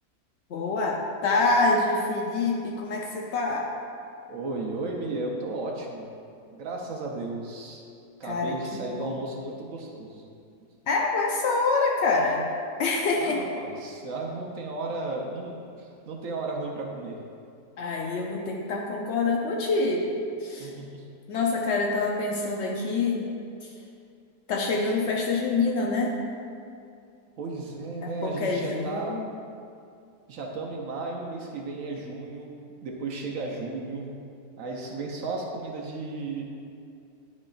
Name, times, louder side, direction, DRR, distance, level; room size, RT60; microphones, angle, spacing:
voice 1, 0.5-3.7 8.2-9.2 10.9-12.5 12.8-13.4 17.8-20.7 21.3-23.3 23.6-23.7 24.5-26.2 28.0-29.2, left 3 dB, 85° left, 0 dB, 0.6 m, -26 dB
voice 2, 4.3-6.1 6.5-7.8 8.2-10.3 13.1-17.2 20.6-21.0 27.4-29.2 30.3-32.5 32.8-34.1 34.6-36.4, right 3 dB, 60° right, 0 dB, 1.0 m, -34 dB
9.3 x 5.2 x 2.4 m, 2.5 s
omnidirectional pair, 1.8 m